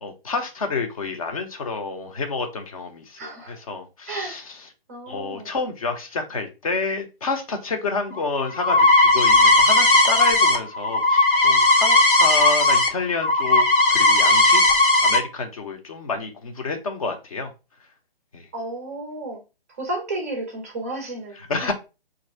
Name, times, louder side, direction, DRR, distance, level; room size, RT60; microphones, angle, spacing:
voice 1, 0.0-4.6 5.1-14.6 15.0-17.5 18.3-18.5 21.5-21.7, left 4 dB, 35° left, 0.7 m, -29 dB
voice 2, 3.2-3.6 4.1-4.4 4.9-5.5 18.5-19.4 19.7-21.7, right 2 dB, 15° right, 0.5 m, -32 dB
sound 1, 8.1-12.9 13.2-15.2, left 2 dB, 60° left, 0.9 m, -17 dB
3.0 x 2.6 x 4.1 m
figure-of-eight pair, 140°, 30 cm